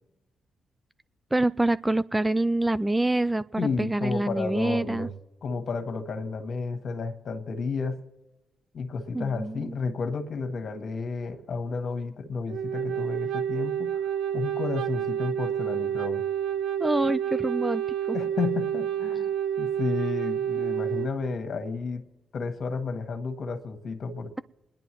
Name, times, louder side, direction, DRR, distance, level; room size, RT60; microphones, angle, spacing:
voice 1, 1.3-5.1 9.1-9.8 16.8-17.8 18.1-18.2, right 2 dB, 15° right, 16 dB, 0.3 m, -26 dB
voice 2, 3.6-5.1 5.4-8.0 8.7-16.2 18.1-19.3 19.6-22.0 22.3-24.4, left 4 dB, 60° left, 6 dB, 1.5 m, -32 dB
Wind instrument woodwind instrument, 12.5-21.1, right 9 dB, 80° right, 0.5 m, -29 dB
28.0 x 10.5 x 3.0 m, 1.1 s
supercardioid pair, 50°, 0 cm